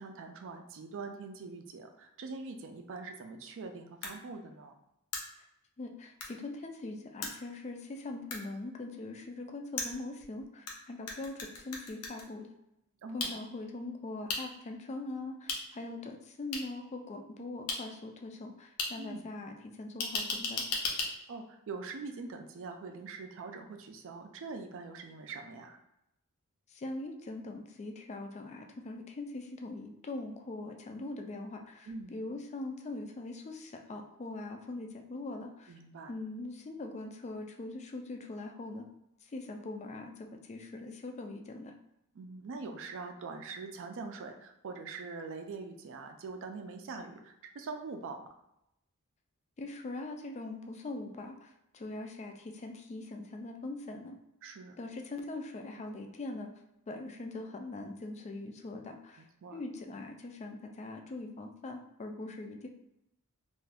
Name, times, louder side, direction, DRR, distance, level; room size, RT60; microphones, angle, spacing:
voice 1, 0.0-4.7 13.0-13.3 19.0-19.2 21.3-25.8 31.9-32.2 35.7-36.1 42.1-48.3 54.4-54.8 59.2-59.6, right 4 dB, 60° right, 5 dB, 0.4 m, -43 dB
sound 1, 4.0-4.1 5.1-5.2 6.2-6.3 7.2-7.3 8.3-8.4 9.8-10.7 11.1-12.2 13.2-13.3 14.3-14.4 15.5-15.6 16.5-16.6 17.7-17.8 18.8-18.9 20.0-21.1, left 3 dB, 80° left, 0.6 m, -34 dB
voice 2, 5.8-12.5 13.1-20.6 26.7-35.7 36.1-38.9 39.2-41.7 49.6-54.2 54.8-56.5 56.9-59.3 59.5-62.7, left 2 dB, 30° left, 4 dB, 0.3 m, -42 dB
2.5 x 2.3 x 3.3 m, 0.83 s
head